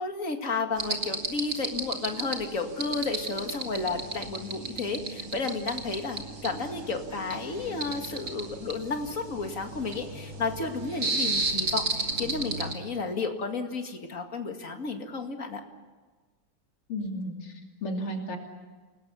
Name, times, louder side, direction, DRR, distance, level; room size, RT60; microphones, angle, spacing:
voice 1, 0.0-15.6, left 4 dB, 40° left, 4 dB, 2.4 m, -32 dB
sound 1, 0.8-12.7, right 3 dB, 40° right, 3.2 m, -34 dB
voice 2, 16.9-18.4, equal, 85° left, 2 dB, 3.9 m, -34 dB
29.5 x 19.5 x 7.0 m, 1.4 s
omnidirectional pair, 2.4 m